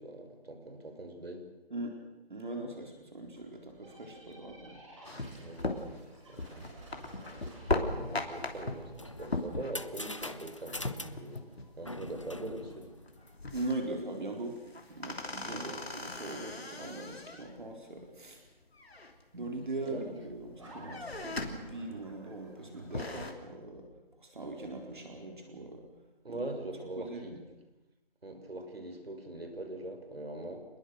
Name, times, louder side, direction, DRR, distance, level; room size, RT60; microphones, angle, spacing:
voice 1, 0.0-1.5 5.3-6.6 7.5-11.4 11.8-12.9 15.5-15.9 19.8-20.2 26.2-27.4 28.2-30.7, right 1 dB, 70° right, 6 dB, 5.4 m, -42 dB
voice 2, 2.3-4.8 13.5-14.6 14.9-18.4 19.3-23.9 24.2-25.8 26.3-26.4 27.0-27.4, right 2 dB, 50° right, 2 dB, 4.3 m, -40 dB
sound 1, 3.8-13.2 20.6-23.5, right 2 dB, 30° right, 6.8 m, -53 dB
sound 2, 5.0-11.7 12.0-12.1 12.4-12.8 13.1-14.0 14.4-17.6 18.7-19.6 20.1-20.5 20.8-21.7 22.1-22.2 22.7-23.3, left 2 dB, 75° left, 3.3 m, -38 dB
sound 3, 8.7-13.7, left 1 dB, 30° left, 0.7 m, -44 dB
27.0 x 21.5 x 6.6 m, 1.0 s
figure-of-eight pair, 175°, 31 cm